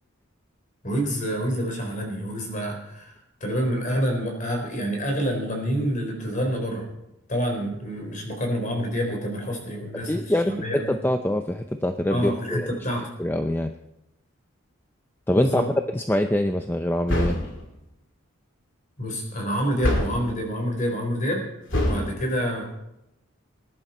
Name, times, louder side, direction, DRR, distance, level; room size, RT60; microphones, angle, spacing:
voice 1, 0.8-3.1 3.4-6.9 7.3-10.8 12.1-13.1 15.3-15.7 19.0-21.5 21.7-22.6, equal, 35° left, 2 dB, 4.0 m, -27 dB
voice 2, 10.1-12.7 13.2-13.7 15.3-15.6 15.9-17.4, left 1 dB, 10° left, 6 dB, 0.5 m, -24 dB
sound 1, 17.1-17.6 19.8-20.3 21.7-22.1, left 1 dB, 60° left, 2.8 m, -24 dB
20.5 x 11.0 x 4.3 m, 0.88 s
head